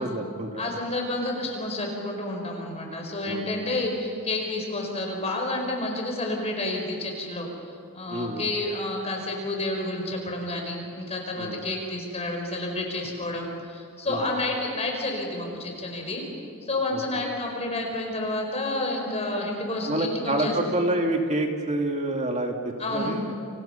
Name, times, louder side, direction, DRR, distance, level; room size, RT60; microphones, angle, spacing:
voice 1, 0.0-0.8 3.2-3.7 8.1-8.5 11.4-11.6 14.1-14.3 16.9-17.0 19.9-23.4, right 1 dB, 30° right, 2 dB, 2.5 m, -28 dB
voice 2, 0.6-7.5 7.9-16.2 16.6-20.5 22.8-23.2, left 2 dB, 30° left, 1 dB, 5.0 m, -30 dB
29.5 x 27.0 x 5.8 m, 2.3 s
head